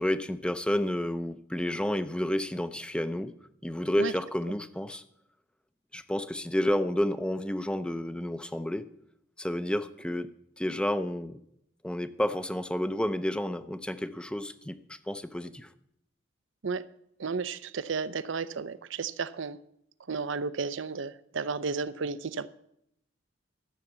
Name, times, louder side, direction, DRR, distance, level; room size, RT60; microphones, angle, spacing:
voice 1, 0.0-3.3 3.6-5.0 5.9-8.8 9.4-10.3 10.6-11.4 11.8-15.7, left 1 dB, 5° left, 0.5 m, -30 dB
voice 2, 17.2-19.6 20.1-22.5, right 5 dB, 65° right, 0.6 m, -33 dB
12.5 x 7.1 x 7.9 m
head